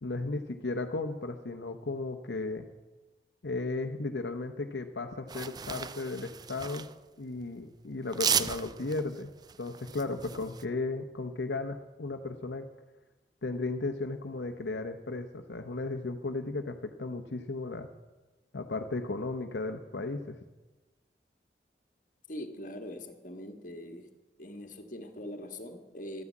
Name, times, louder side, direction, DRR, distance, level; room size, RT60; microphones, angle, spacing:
voice 1, 0.0-2.7 3.4-6.9 7.2-9.3 9.6-12.7 13.4-17.9 18.5-20.4, left 3 dB, 80° left, 0.9 m, -35 dB
sound 1, 5.3-6.9 8.1-10.6, right 7 dB, 25° right, 0.4 m, -34 dB
voice 2, 22.3-24.1 24.4-26.2, left 1 dB, 50° left, 1.6 m, -42 dB
12.5 x 9.7 x 8.5 m
head